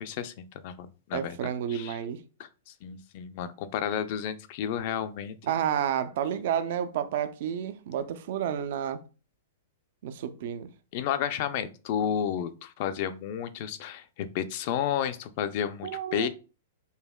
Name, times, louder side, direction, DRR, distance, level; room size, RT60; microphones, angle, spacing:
voice 1, 0.0-2.0 2.4-2.5 2.8-5.4 10.9-16.3, left 9 dB, 50° left, 0.4 m, -32 dB
voice 2, 1.1-2.2 5.4-9.0 10.0-10.7 15.8-16.3, right 9 dB, 60° right, 0.4 m, -30 dB
5.3 x 2.1 x 2.2 m
hypercardioid pair, 140°, 0 cm